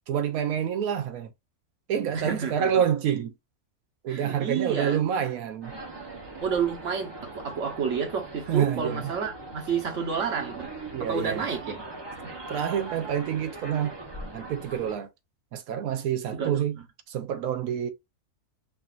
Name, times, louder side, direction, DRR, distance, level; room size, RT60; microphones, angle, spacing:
voice 1, 0.1-1.3 1.9-3.3 4.0-5.8 8.5-9.0 10.9-11.5 12.5-14.0 14.3-15.1 15.5-16.8 17.1-17.9, right 9 dB, 70° right, 1.1 m, -27 dB
voice 2, 2.1-2.7 4.1-5.0 6.4-10.7 11.0-11.9 12.1-12.3 16.3-16.6, right 6 dB, 55° right, 1.4 m, -30 dB
sound 1, 5.6-14.9, right 2 dB, 20° right, 0.8 m, -41 dB
4.9 x 2.7 x 2.5 m
omnidirectional pair, 1.6 m